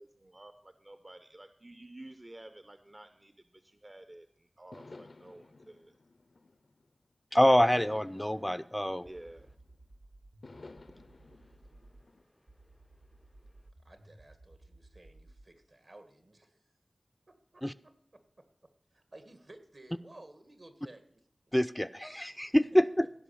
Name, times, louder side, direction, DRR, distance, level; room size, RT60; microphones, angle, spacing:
voice 1, 0.0-5.9 9.0-9.5, right 1 dB, 40° right, 0.6 m, -51 dB
sound 1, 4.7-7.0 7.6-9.8 10.4-12.2, left 3 dB, 75° left, 0.5 m, -53 dB
voice 2, 7.3-9.1 17.6-17.7 21.5-23.1, equal, 10° left, 0.4 m, -26 dB
sound 2, 9.0-12.1 12.5-15.5, right 2 dB, 85° right, 1.5 m, -57 dB
voice 3, 13.8-16.6 17.3-17.9 18.9-21.0, right 2 dB, 60° right, 1.6 m, -55 dB
16.0 x 5.5 x 6.9 m
wide cardioid pair, 45°, 0 cm